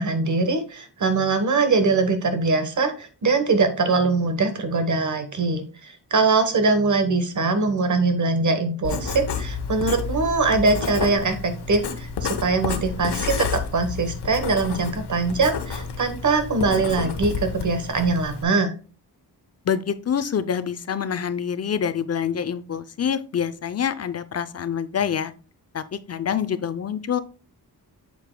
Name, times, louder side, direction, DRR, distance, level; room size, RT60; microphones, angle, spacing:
voice 1, 0.0-18.7, right 3 dB, 45° right, 8 dB, 1.2 m, -22 dB
Writing, 8.8-18.4, left 5 dB, 75° left, 1.0 m, -30 dB
voice 2, 19.7-25.3 25.7-27.2, left 8 dB, 40° left, 12 dB, 0.5 m, -26 dB
7.8 x 6.8 x 2.2 m, 0.36 s
wide cardioid pair, 145°, 40 cm